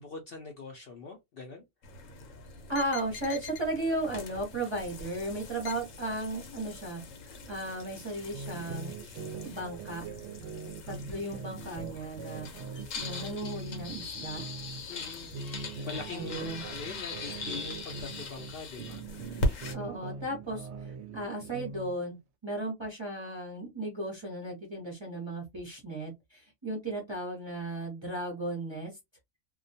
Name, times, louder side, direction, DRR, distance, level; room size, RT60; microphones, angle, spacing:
voice 1, 0.0-1.6 14.9-15.4 15.8-19.6, left 4 dB, 60° left, 0.6 m, -43 dB
sound 1, 1.8-19.8, left 2 dB, 80° left, 1.0 m, -40 dB
voice 2, 2.7-8.9 9.4-10.1 10.8-12.5 12.9-14.4 16.1-16.6 19.7-22.2 22.4-28.9, right 1 dB, 30° right, 0.6 m, -35 dB
sound 2, 8.3-14.8 15.2-18.5 18.8-21.9, right 5 dB, 65° right, 0.8 m, -42 dB
2.3 x 2.2 x 2.6 m
omnidirectional pair, 1.3 m